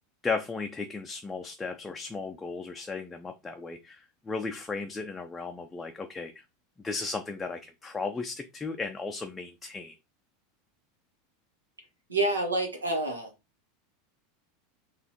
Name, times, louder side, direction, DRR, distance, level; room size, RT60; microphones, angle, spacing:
voice 1, 0.2-6.3 6.8-9.9, left 4 dB, 15° left, 4 dB, 0.4 m, -35 dB
voice 2, 12.1-13.3, right 2 dB, 85° right, 3 dB, 1.1 m, -28 dB
4.0 x 2.5 x 2.9 m, 0.25 s
figure-of-eight pair, 85°, 0 cm